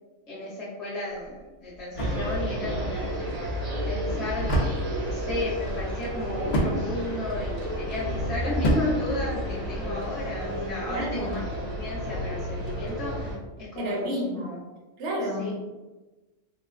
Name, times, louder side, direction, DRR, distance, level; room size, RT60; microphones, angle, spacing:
voice 1, 0.3-3.2 3.9-14.6 15.4-15.5, left 1 dB, 35° left, -8 dB, 0.8 m, -34 dB
sound 1, 1.1-10.0, right 1 dB, 65° left, 0.4 m, -32 dB
sound 2, 1.9-13.3, equal, 35° right, 0.8 m, -31 dB
voice 2, 10.9-11.4 13.8-14.5 15.0-15.5, right 1 dB, 65° right, -2 dB, 1.0 m, -31 dB
2.4 x 2.3 x 3.3 m, 1.2 s
omnidirectional pair, 1.4 m